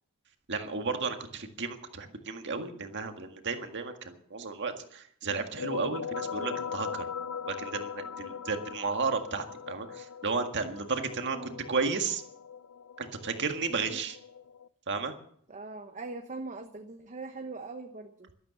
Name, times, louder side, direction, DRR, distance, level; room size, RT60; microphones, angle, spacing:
voice 1, 0.5-7.1 7.5-12.2 13.0-14.2 14.9-15.1, right 4 dB, 55° right, 6 dB, 1.8 m, -33 dB
sound 1, 5.3-14.7, left 6 dB, 80° left, 0.6 m, -40 dB
voice 2, 11.3-11.6 13.7-14.0 15.5-18.3, right 3 dB, 35° right, 5 dB, 1.0 m, -41 dB
12.5 x 12.5 x 7.1 m, 0.64 s
head